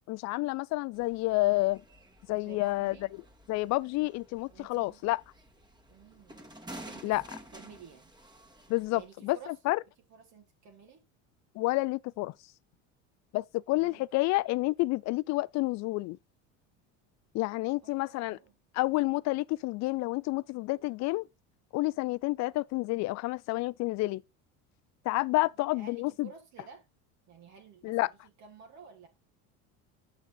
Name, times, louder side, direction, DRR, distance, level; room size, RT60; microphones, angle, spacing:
voice 1, 0.0-1.8 2.3-3.0 3.5-5.2 7.0-7.2 8.7-9.8 11.5-12.3 13.3-16.2 17.3-18.4 18.7-21.3 21.7-24.2 25.0-26.3 27.8-28.1, left 21 dB, 50° left, 0.4 m, -29 dB
sound 1, 0.9-9.1, right 1 dB, 10° right, 2.0 m, -51 dB
voice 2, 2.4-3.1 4.5-5.2 5.9-6.4 6.7-7.2 7.5-8.1 8.9-9.6 10.1-11.0 13.7-14.1 17.8-18.5 25.7-26.9 27.3-29.1, right 6 dB, 50° right, 2.1 m, -52 dB
8.1 x 6.1 x 3.9 m
supercardioid pair, 115°, 35 cm